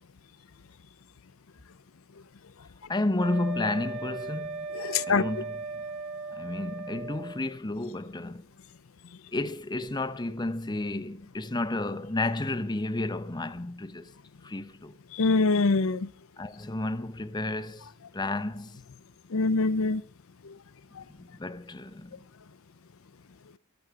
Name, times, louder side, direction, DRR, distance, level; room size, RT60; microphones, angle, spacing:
voice 1, 2.9-4.7 5.1-5.8 6.3-8.4 9.3-14.1 14.4-14.9 16.4-18.8 21.2-22.2, left 2 dB, 20° left, 0.7 m, -32 dB
Wind instrument woodwind instrument, 3.2-7.4, right 2 dB, 65° right, 2.0 m, -37 dB
voice 2, 4.7-5.2 15.1-16.1 19.3-20.0, left 3 dB, 70° left, 0.6 m, -24 dB
23.5 x 8.0 x 4.8 m
head